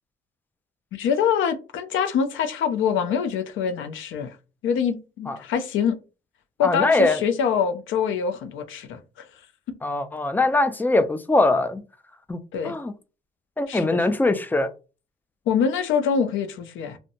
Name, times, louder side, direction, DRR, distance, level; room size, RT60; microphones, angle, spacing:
voice 1, 0.9-4.4 4.6-5.9 6.6-9.3 12.5-12.8 13.7-14.0 15.5-17.0, left 7 dB, 75° left, 0.5 m, -25 dB
voice 2, 6.6-7.2 9.8-11.8 12.3-12.4 12.6-12.9 13.6-14.7, left 2 dB, 10° left, 0.3 m, -22 dB
2.7 x 2.1 x 2.6 m
cardioid pair, 90°, 20 cm